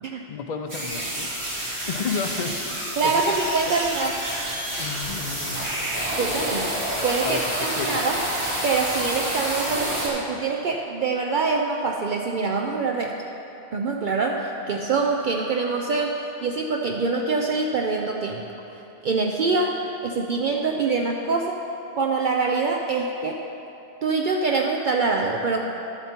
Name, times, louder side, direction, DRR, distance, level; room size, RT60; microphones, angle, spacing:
voice 1, 0.3-3.4 3.7-3.8 4.8-5.8 7.2-7.5 7.8-8.0, left 5 dB, 45° left, 6 dB, 0.6 m, -32 dB
sound 1, 0.7-10.1, right 1 dB, 80° right, 2.5 m, -28 dB
voice 2, 3.0-4.2 6.1-6.7 7.0-8.2 8.6-13.1 13.7-18.4 19.0-21.6 22.0-23.4 24.0-25.6, right 4 dB, 60° right, 1 dB, 0.6 m, -25 dB
11.5 x 7.2 x 4.3 m, 3.0 s
omnidirectional pair, 1.1 m